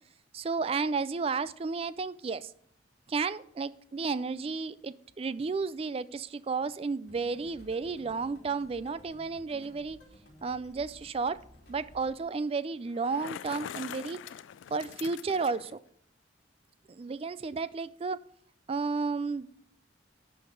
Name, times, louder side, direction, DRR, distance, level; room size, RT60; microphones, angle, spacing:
voice 1, 0.3-2.5 3.1-10.0 10.4-11.4 11.7-14.2 14.7-15.8 16.9-18.2 18.7-19.5, right 4 dB, 30° right, 15 dB, 0.3 m, -32 dB
sound 1, 7.1-12.2, left 1 dB, 55° left, 2.6 m, -55 dB
Bicycle, 12.9-15.7, left 9 dB, 85° left, 0.3 m, -43 dB
11.0 x 3.9 x 6.5 m, 0.66 s
head